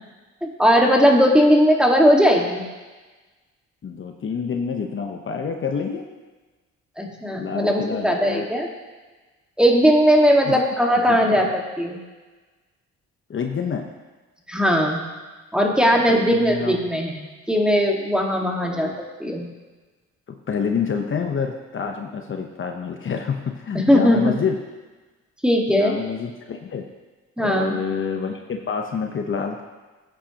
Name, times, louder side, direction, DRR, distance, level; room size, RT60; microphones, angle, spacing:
voice 1, 0.4-2.6 7.0-8.7 9.6-12.0 14.5-15.0 15.5-18.9 19.2-19.5 23.7-24.2 25.4-26.0 27.4-27.8, equal, 5° right, 0 dB, 1.8 m, -18 dB
voice 2, 3.8-6.1 7.4-8.5 10.5-10.6 11.0-11.5 13.3-13.9 15.9-16.8 18.4-19.0 20.3-24.6 25.7-26.9 27.4-29.6, left 6 dB, 40° left, 3 dB, 1.0 m, -28 dB
16.0 x 8.9 x 3.0 m, 1.3 s
cardioid pair, 90°, 30 cm